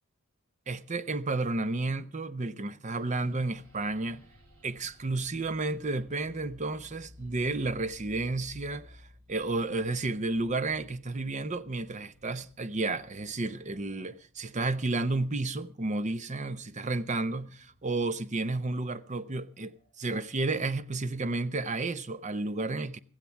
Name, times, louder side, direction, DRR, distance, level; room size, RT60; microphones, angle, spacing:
voice 1, 0.7-4.2 4.6-23.0, right 2 dB, 30° right, 0.7 m, -32 dB
sound 1, 3.0-21.6, left 1 dB, 65° right, 6.3 m, -58 dB
15.5 x 15.0 x 4.6 m
head